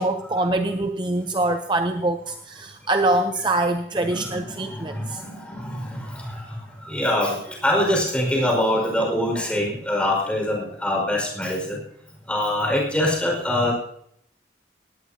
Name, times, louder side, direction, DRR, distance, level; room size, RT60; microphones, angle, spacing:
voice 1, 0.0-5.2, right 2 dB, 25° right, 6 dB, 0.6 m, -24 dB
voice 2, 4.0-11.8 12.3-13.7, left 1 dB, 5° left, 0 dB, 5.2 m, -24 dB
18.5 x 17.0 x 2.8 m, 0.69 s
head